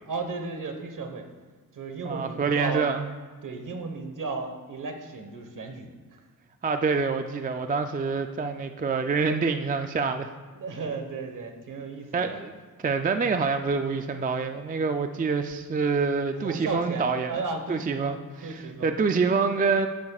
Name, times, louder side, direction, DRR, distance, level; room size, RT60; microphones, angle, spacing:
voice 1, 0.1-1.3 1.7-2.9 3.4-6.3 10.5-12.4 16.3-19.3, right 4 dB, 60° right, 5 dB, 1.3 m, -35 dB
voice 2, 2.0-3.0 6.6-10.3 12.1-12.5 12.8-17.3 17.7-19.9, right 4 dB, 25° right, 7 dB, 0.3 m, -26 dB
16.0 x 10.5 x 2.4 m, 1.4 s
wide cardioid pair, 170°, 36 cm